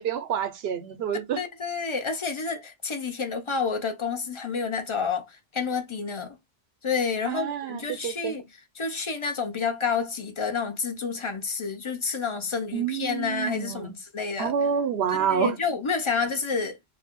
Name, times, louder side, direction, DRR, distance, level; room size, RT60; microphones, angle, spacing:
voice 1, 0.0-1.4 7.2-8.4 12.7-14.0 14.4-15.6, right 8 dB, 75° right, 0.9 m, -28 dB
voice 2, 1.4-6.4 6.8-8.4 8.8-14.5 15.1-16.8, left 5 dB, 40° left, 0.5 m, -29 dB
2.5 x 2.1 x 3.5 m
omnidirectional pair, 1.1 m